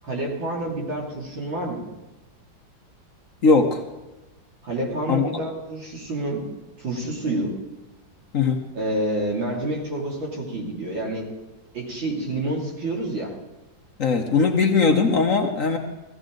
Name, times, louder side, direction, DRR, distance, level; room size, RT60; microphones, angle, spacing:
voice 1, 0.0-1.9 4.6-6.5 6.8-7.6 8.7-11.3 11.7-13.3, right 1 dB, 80° right, -2 dB, 3.5 m, -28 dB
voice 2, 3.4-3.8 5.1-5.3 8.3-8.6 14.0-15.8, left 4 dB, 50° left, 3 dB, 1.2 m, -19 dB
16.5 x 16.0 x 3.9 m, 1.1 s
omnidirectional pair, 2.1 m